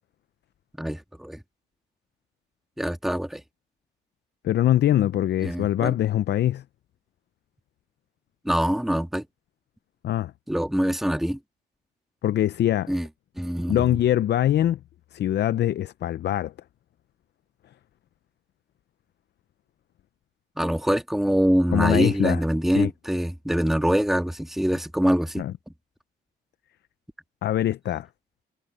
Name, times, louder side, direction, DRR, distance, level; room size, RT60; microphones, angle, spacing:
voice 1, 0.8-1.4 2.8-3.4 5.4-5.9 8.5-9.3 10.5-11.4 12.9-13.1 13.4-14.0 20.6-25.7, equal, ahead, 2.0 m, -24 dB
voice 2, 4.4-6.6 10.0-10.3 12.2-12.9 13.7-14.8 15.1-16.5 21.7-22.4 22.8-22.9 25.4-25.5 27.4-28.1, left 12 dB, 60° left, 0.6 m, -23 dB
cardioid pair, 90°, 20 cm